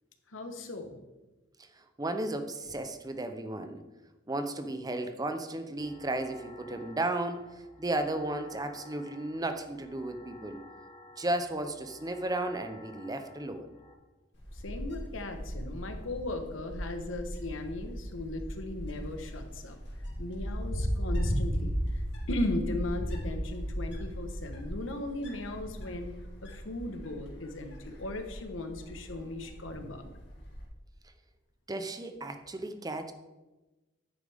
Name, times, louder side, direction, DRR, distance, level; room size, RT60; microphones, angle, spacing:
voice 1, 0.3-1.0 14.5-19.8 20.2-21.8 22.3-26.1 26.4-30.0, left 2 dB, 85° left, 6 dB, 1.2 m, -37 dB
voice 2, 1.8-3.8 4.3-10.6 11.2-13.7 31.7-33.1, right 2 dB, 20° right, 8 dB, 0.7 m, -34 dB
sound 1, 5.8-13.9, left 1 dB, 25° left, 1.3 m, -53 dB
Wind, 14.3-30.6, equal, 65° left, 2.3 m, -36 dB
10.0 x 9.0 x 3.5 m, 1.1 s
head